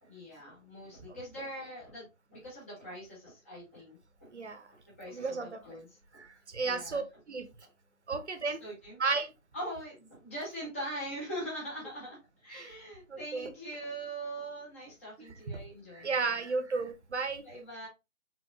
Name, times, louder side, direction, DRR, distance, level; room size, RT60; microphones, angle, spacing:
voice 1, 0.0-4.3 4.7-6.2 6.6-7.2 7.6-7.7 8.1-9.2 9.5-16.4 17.4-17.9, right 1 dB, 10° left, 1.1 m, -43 dB
voice 2, 4.3-4.7 5.1-5.6 6.1-7.0 7.3-7.5 8.1-8.6 9.0-9.3 12.5-12.7 13.1-13.5 16.0-17.4, right 4 dB, 55° right, 0.9 m, -33 dB
4.6 x 3.7 x 2.5 m
figure-of-eight pair, 155°, 40 cm